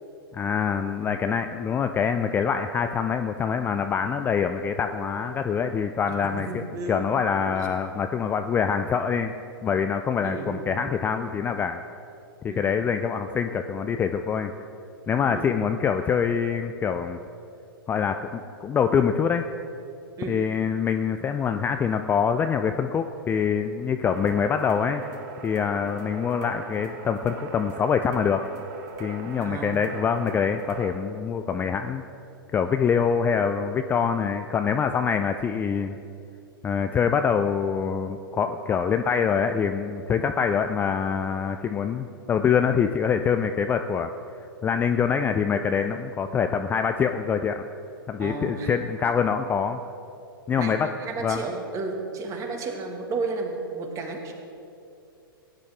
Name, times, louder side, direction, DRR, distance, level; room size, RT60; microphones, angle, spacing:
voice 1, 0.3-9.3 9.6-11.8 12.4-14.5 15.1-17.2 17.9-19.4 20.3-25.0 25.4-28.4 29.0-32.0 32.5-36.0 36.6-44.1 44.6-47.6 48.1-49.8 50.5-50.9 51.2-51.4, left 6 dB, 15° left, 7 dB, 0.4 m, -25 dB
voice 2, 6.1-7.0 7.5-7.6 10.2-10.6 12.5-12.7 15.3-15.6 20.2-20.4 29.4-29.8 48.2-48.7 50.6-54.3, right 3 dB, 25° right, 3 dB, 1.8 m, -33 dB
sound 1, 24.1-30.9, right 4 dB, 50° right, 1.3 m, -40 dB
18.0 x 9.9 x 3.5 m, 2.6 s
figure-of-eight pair, 110°, 12 cm